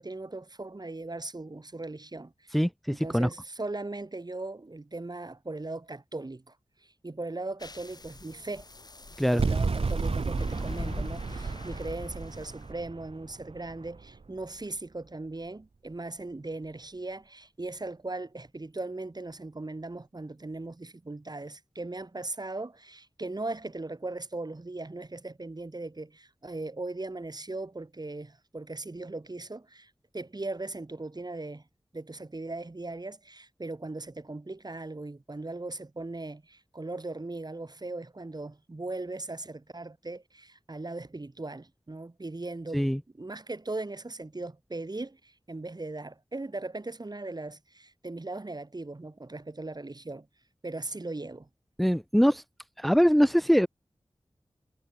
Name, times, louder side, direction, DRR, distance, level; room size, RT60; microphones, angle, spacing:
voice 1, 0.0-2.6 2.9-6.6 6.8-8.7 9.3-31.6 31.9-50.3 50.6-51.5, right 2 dB, 45° right, 4.5 m, -38 dB
voice 2, 3.0-3.3 9.2-9.4 42.7-43.0 51.8-52.4 52.8-53.7, equal, ahead, 1.5 m, -22 dB
sound 1, 7.6-12.7, left 2 dB, 45° left, 2.1 m, -43 dB
sound 2, 9.4-14.6, right 4 dB, 75° right, 1.9 m, -32 dB
wide cardioid pair, 60°, 10 cm